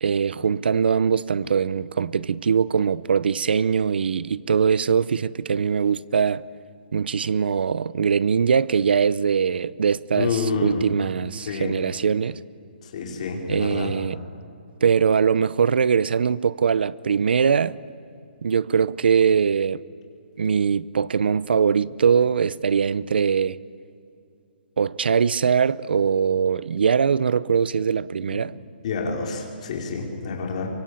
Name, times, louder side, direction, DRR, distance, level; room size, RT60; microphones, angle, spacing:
voice 1, 0.0-6.4 6.9-12.4 13.5-14.2 14.8-17.8 18.4-19.8 20.4-23.6 24.8-28.5, right 6 dB, 75° right, 0.7 m, -22 dB
voice 2, 10.1-10.8 11.4-11.7 12.8-13.9 28.8-30.7, left 4 dB, 40° left, 4.6 m, -28 dB
24.0 x 23.5 x 8.6 m
hypercardioid pair, 170°, 6 cm